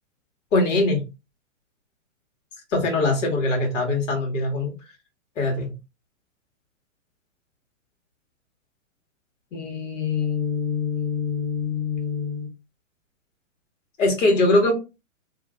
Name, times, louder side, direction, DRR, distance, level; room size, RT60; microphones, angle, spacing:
voice 1, 0.5-1.0 2.7-4.7 5.4-5.7 9.5-12.5 14.0-14.7, left 3 dB, 65° left, 1 dB, 1.6 m, -23 dB
3.2 x 2.8 x 2.4 m, 0.27 s
hypercardioid pair, 140°, 40 cm